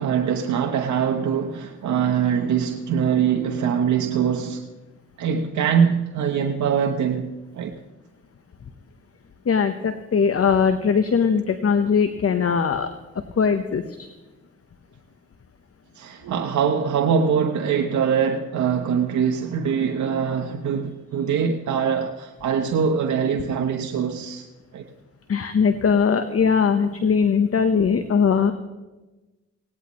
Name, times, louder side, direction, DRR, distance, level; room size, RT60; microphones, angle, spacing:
voice 1, 0.0-4.6 5.2-7.7 15.9-24.5 24.7-24.8, right 7 dB, 80° right, 1.0 m, -23 dB
voice 2, 9.4-14.1 25.3-28.5, left 6 dB, 55° left, 1.1 m, -20 dB
18.5 x 17.5 x 3.1 m
supercardioid pair, 45°, 29 cm